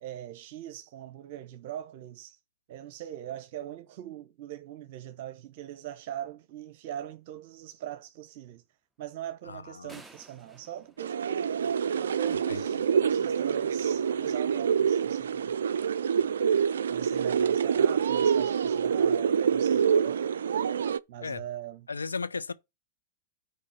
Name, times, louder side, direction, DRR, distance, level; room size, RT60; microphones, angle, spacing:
voice 1, 0.0-2.4 2.7-8.6 9.0-11.5 11.8-15.6 16.2-16.4 16.9-20.3 21.1-21.9, right 11 dB, 55° right, 0.8 m, -41 dB
voice 2, 9.4-10.0 12.5-12.9 21.2-21.4 21.9-22.5, left 4 dB, 85° left, 0.6 m, -36 dB
sound 1, 9.9-12.0, right 3 dB, 5° right, 0.9 m, -53 dB
sound 2, 11.0-21.0, right 7 dB, 75° right, 0.4 m, -26 dB
sound 3, 12.4-16.8, left 1 dB, 15° left, 1.7 m, -54 dB
8.6 x 4.7 x 5.7 m
hypercardioid pair, 100°, 0 cm